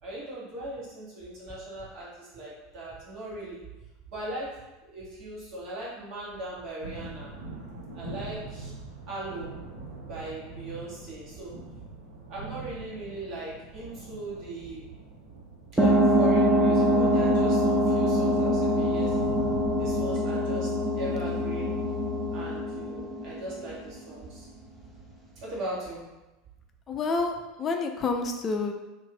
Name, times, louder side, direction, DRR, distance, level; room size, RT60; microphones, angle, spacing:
voice 1, 0.0-3.6 4.1-4.5 4.8-7.3 7.9-8.7 9.1-9.6 10.0-11.5 12.3-14.8 15.7-19.1 19.8-20.7 21.0-21.8 22.3-24.5 25.4-26.0, right 1 dB, 45° right, -6 dB, 1.2 m, -38 dB
sound 1, 6.8-20.1, right 3 dB, 70° right, 1.1 m, -43 dB
sound 2, 15.8-23.9, equal, 10° right, 0.7 m, -24 dB
voice 2, 26.9-28.7, left 3 dB, 30° left, 4 dB, 0.4 m, -29 dB
2.6 x 2.5 x 3.7 m, 1.0 s
figure-of-eight pair, 75°, 0 cm